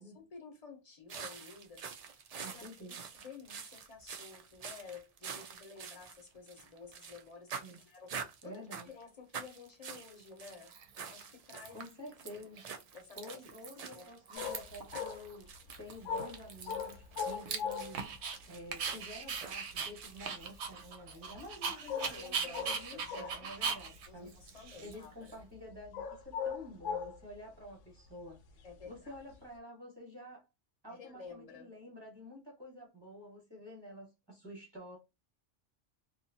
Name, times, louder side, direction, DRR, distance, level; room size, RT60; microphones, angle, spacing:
voice 1, 0.1-10.7 11.1-11.8 12.4-12.5 12.9-13.4 13.8-14.1 21.8-23.5 24.1-25.4 28.6-29.2 30.9-31.7, left 5 dB, 35° left, 0.8 m, -52 dB
sound 1, 1.1-7.2 7.5-9.0 9.3-20.3, right 6 dB, 85° right, 0.3 m, -47 dB
voice 2, 2.4-3.1 7.6-7.8 8.4-8.9 11.7-12.7 13.2-15.5 15.8-24.3 24.8-28.4 28.8-30.4 30.8-35.0, left 1 dB, 20° right, 1.0 m, -50 dB
Dog, 10.0-10.1 10.7-11.2 11.5-12.3 12.6-12.7 12.9-14.0 14.3-14.9 15.3-15.4 15.7-18.4 18.7-25.3, right 5 dB, 70° right, 0.9 m, -40 dB
sound 2, 14.3-18.2 18.4-18.5 18.7-19.7 20.0-20.9 21.3-21.5 21.9-23.8 24.2-25.0 25.4-27.3 28.7-29.3, left 6 dB, 75° left, 0.9 m, -39 dB
2.6 x 2.4 x 2.7 m
omnidirectional pair, 1.3 m